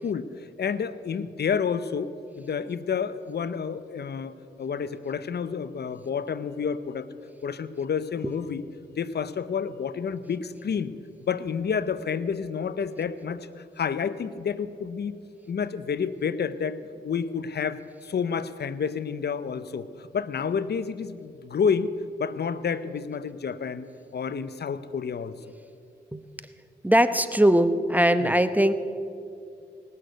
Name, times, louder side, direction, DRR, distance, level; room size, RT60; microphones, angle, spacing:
voice 1, 0.0-7.1 7.4-8.6 8.9-10.9 11.2-15.2 15.5-21.9 22.2-25.3 28.2-28.4, left 6 dB, 65° left, 15 dB, 0.7 m, -30 dB
voice 2, 26.8-28.7, right 1 dB, 10° right, 11 dB, 0.8 m, -20 dB
18.5 x 6.6 x 7.9 m, 2.5 s
cardioid pair, 45°, 19 cm